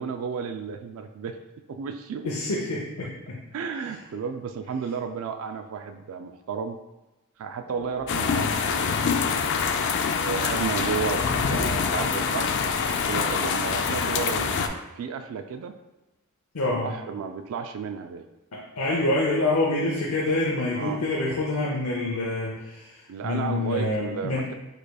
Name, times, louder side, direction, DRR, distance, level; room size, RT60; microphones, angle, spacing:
voice 1, 0.0-1.4 1.7-2.3 3.5-6.8 7.4-9.4 10.1-12.6 12.9-15.7 16.7-18.2 20.8-21.0 23.1-24.5, right 6 dB, 65° right, 7 dB, 0.3 m, -33 dB
voice 2, 2.2-3.4 16.5-16.9 18.5-24.5, left 2 dB, 80° left, -4 dB, 0.7 m, -27 dB
sound 1, 7.6-13.5, right 2 dB, 85° right, 1.5 m, -50 dB
sound 2, 8.1-14.7, left 5 dB, 55° left, 0.4 m, -25 dB
4.9 x 4.7 x 2.3 m, 1.0 s
head